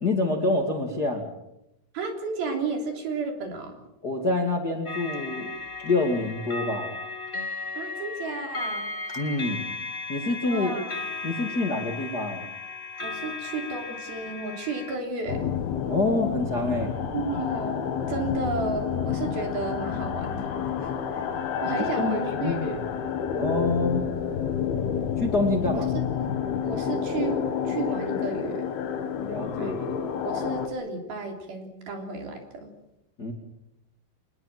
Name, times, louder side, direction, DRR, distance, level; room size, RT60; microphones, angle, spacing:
voice 1, 0.0-1.3 4.0-5.6 5.8-7.0 9.2-9.6 10.1-10.7 11.2-12.5 15.9-16.9 21.6-22.2 22.4-22.6 23.4-24.1 25.2-25.9 29.2-29.8 33.2-33.3, left 2 dB, 30° left, 3 dB, 2.1 m, -26 dB
voice 2, 1.9-3.8 7.8-8.9 10.5-11.0 13.0-15.4 17.1-21.3 21.6-22.8 25.7-25.8 26.6-28.7 29.6-32.7, right 4 dB, 60° right, 4 dB, 5.2 m, -33 dB
sound 1, 4.8-14.9, left 3 dB, 50° left, 0.6 m, -35 dB
sound 2, 15.3-30.7, left 7 dB, 70° left, 3.5 m, -29 dB
26.0 x 20.5 x 7.6 m, 0.87 s
omnidirectional pair, 4.8 m